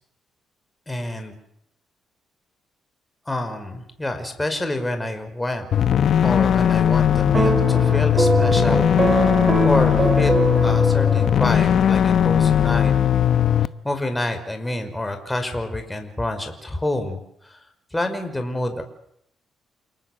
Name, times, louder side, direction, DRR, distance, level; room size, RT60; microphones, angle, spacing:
voice 1, 0.9-1.4 3.3-5.7 6.2-8.9 9.2-9.4 9.6-10.3 10.6-12.9 13.8-17.6 17.9-18.8, left 1 dB, 10° left, 6 dB, 5.4 m, -27 dB
sound 1, 5.7-13.7, left 9 dB, 60° left, 1.0 m, -18 dB
sound 2, 7.3-11.8, right 3 dB, 30° right, 2.7 m, -23 dB
29.0 x 19.0 x 7.9 m, 0.74 s
cardioid pair, 90°, 0 cm